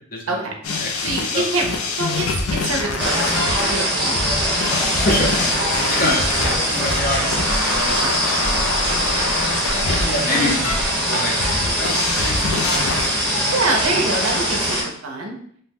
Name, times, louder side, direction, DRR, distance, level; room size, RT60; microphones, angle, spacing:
voice 1, 0.1-0.5 0.8-1.4 5.0-5.3 5.6-7.9 9.4-10.7 11.1-12.4 12.7-12.8 13.2-13.4, left 1 dB, 40° left, 0 dB, 0.6 m, -26 dB
sound 1, 0.6-13.1, left 3 dB, 80° left, 0.5 m, -25 dB
voice 2, 1.0-1.7 2.0-4.6 5.7-5.9 7.9-8.2 10.3-10.5 13.5-15.4, right 2 dB, 75° right, 2 dB, 0.5 m, -25 dB
sound 2, 3.0-14.8, equal, 5° right, 0.9 m, -22 dB
2.7 x 2.2 x 3.4 m, 0.62 s
head